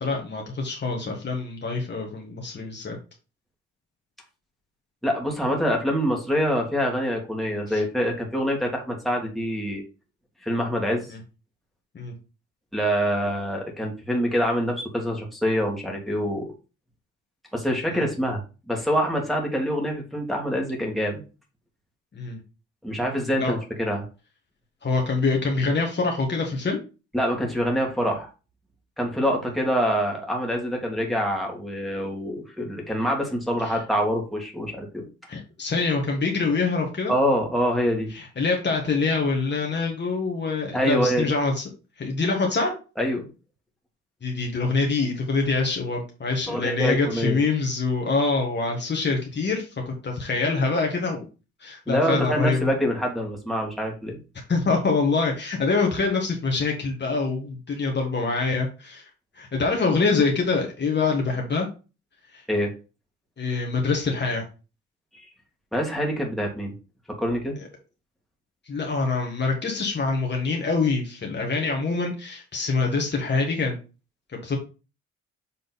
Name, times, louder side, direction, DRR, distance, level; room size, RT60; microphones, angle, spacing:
voice 1, 0.0-3.0 7.7-7.8 11.1-11.2 11.9-12.1 17.9-18.1 22.1-22.4 23.3-23.5 24.8-26.8 33.6-33.8 35.3-37.1 38.1-41.6 42.0-42.7 44.2-51.2 51.6-52.7 54.5-59.1 59.3-61.7 62.3-62.4 63.4-64.4 68.7-73.8 74.3-74.6, left 4 dB, 35° left, 1 dB, 1.7 m, -25 dB
voice 2, 5.0-9.8 10.4-11.1 12.7-16.5 17.5-18.4 18.7-21.2 22.8-24.1 27.1-28.3 29.0-35.0 37.1-38.1 40.7-41.3 43.0-43.2 46.5-47.4 51.9-54.2 62.5-62.7 65.1-65.3 65.7-66.7 67.2-67.6, equal, ahead, 0 dB, 2.3 m, -25 dB
7.2 x 3.7 x 4.2 m, 0.32 s
cardioid pair, 90°, 30 cm